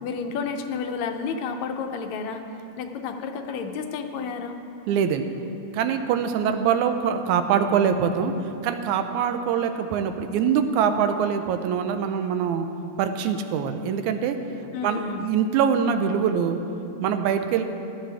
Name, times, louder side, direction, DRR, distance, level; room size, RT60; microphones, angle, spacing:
voice 1, 0.0-2.4 2.8-4.6 14.7-15.3, left 5 dB, 75° left, 5 dB, 1.9 m, -31 dB
voice 2, 4.9-5.3 5.7-8.3 8.6-12.7 13.0-14.4 14.8-16.6 17.0-17.6, right 7 dB, 85° right, 7 dB, 2.1 m, -23 dB
15.0 x 12.0 x 3.4 m, 2.8 s
omnidirectional pair, 3.4 m